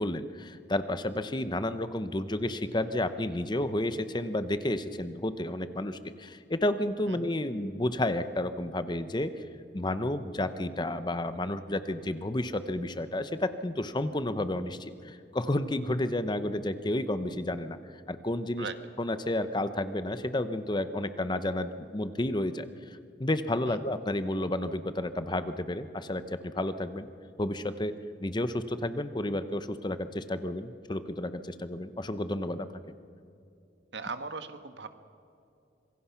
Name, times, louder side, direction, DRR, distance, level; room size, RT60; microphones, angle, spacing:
voice 1, 0.0-9.3 9.7-17.8 18.1-18.7 19.0-22.7 23.2-27.1 27.4-27.9 28.2-32.7, left 1 dB, 25° left, 11 dB, 0.8 m, -31 dB
voice 2, 33.9-34.9, right 4 dB, 75° right, 9 dB, 1.4 m, -38 dB
25.5 x 22.5 x 5.8 m, 2.6 s
head